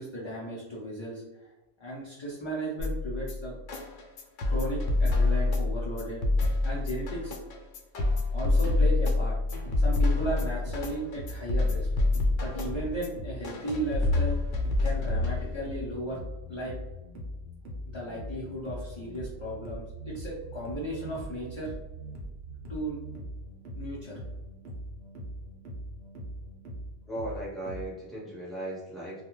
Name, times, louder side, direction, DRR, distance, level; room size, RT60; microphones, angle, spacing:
voice 1, 0.0-1.5 1.8-3.6 4.5-6.2 6.6-7.3 8.3-9.4 9.8-11.9 12.4-14.4 14.8-16.2 16.5-16.7 17.9-21.7 22.7-23.0 23.8-24.2, right 1 dB, 40° left, -7 dB, 0.4 m, -35 dB
sound 1, 2.8-15.8, left 2 dB, 80° left, 0.9 m, -27 dB
sound 2, 9.5-27.9, equal, 70° right, 1.0 m, -41 dB
voice 2, 27.0-29.2, right 1 dB, ahead, -6 dB, 0.8 m, -37 dB
2.3 x 2.2 x 3.0 m, 1.1 s
omnidirectional pair, 1.2 m